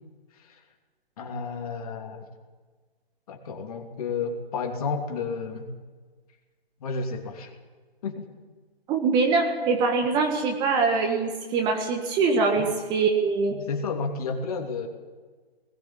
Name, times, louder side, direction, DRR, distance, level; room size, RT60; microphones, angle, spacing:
voice 1, 1.2-2.2 3.3-5.7 6.8-7.5 8.0-8.3 12.6-12.7 13.5-14.9, left 4 dB, 35° left, 3 dB, 2.9 m, -31 dB
voice 2, 8.9-13.6, right 4 dB, 15° right, 3 dB, 1.5 m, -23 dB
20.0 x 18.5 x 7.4 m, 1.4 s
figure-of-eight pair, 150°, 31 cm